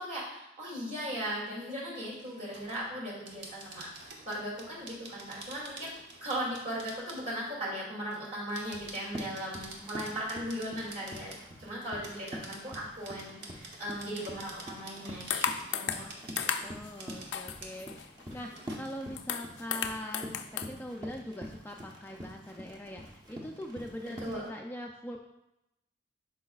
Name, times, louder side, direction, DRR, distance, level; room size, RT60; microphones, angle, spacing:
voice 1, 0.0-3.9 4.3-5.9 6.2-16.1 24.2-24.5, equal, 40° right, -5 dB, 2.6 m, -38 dB
sound 1, 2.1-2.8 3.2-7.5 8.1-11.8 12.0-17.3 17.6-17.8 18.3-19.0 19.3-19.4 19.8-20.0, right 2 dB, 60° right, 1.1 m, -48 dB
Run, 8.5-24.5, equal, 25° right, 0.9 m, -46 dB
sound 2, 15.3-16.1 16.4-16.9 17.3-18.2 18.7-18.8 19.0-20.7, left 8 dB, 75° left, 0.4 m, -34 dB
voice 2, 16.6-25.2, equal, 10° left, 1 dB, 0.4 m, -42 dB
10.5 x 4.9 x 2.4 m, 0.87 s
head